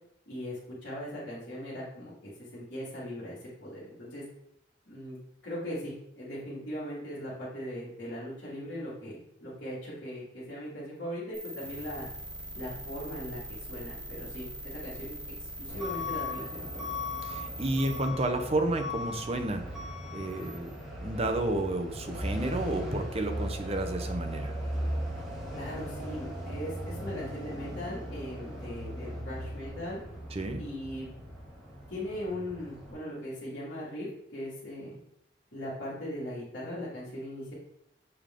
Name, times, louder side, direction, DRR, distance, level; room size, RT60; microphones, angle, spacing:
voice 1, 0.3-4.2 4.9-12.1 12.5-15.1 15.4-16.9 25.5-30.0 30.6-31.1 31.9-35.0 35.5-37.5, equal, 55° left, -12 dB, 2.4 m, -39 dB
Down and up glitch, 11.3-18.0, right 1 dB, 75° right, 1.8 m, -42 dB
Truck / Alarm, 15.7-32.9, left 1 dB, ahead, 2.5 m, -38 dB
voice 2, 17.2-19.7 20.1-20.7 21.0-24.5 30.3-30.6, right 1 dB, 35° right, 5 dB, 0.8 m, -31 dB
7.1 x 5.0 x 3.7 m, 0.77 s
head